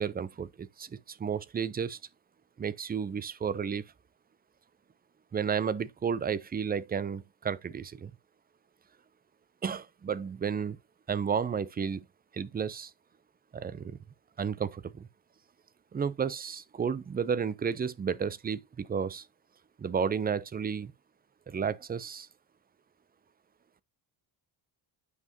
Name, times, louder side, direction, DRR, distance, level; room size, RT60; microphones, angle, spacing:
voice 1, 0.0-2.0 2.6-3.9 5.3-8.1 9.6-10.8 11.1-12.0 12.3-12.9 13.5-14.0 14.4-15.1 15.9-19.3 19.8-20.9 21.5-22.3, right 6 dB, 20° right, 0.3 m, -32 dB
9.4 x 5.6 x 2.6 m
wide cardioid pair, 155°, 48 cm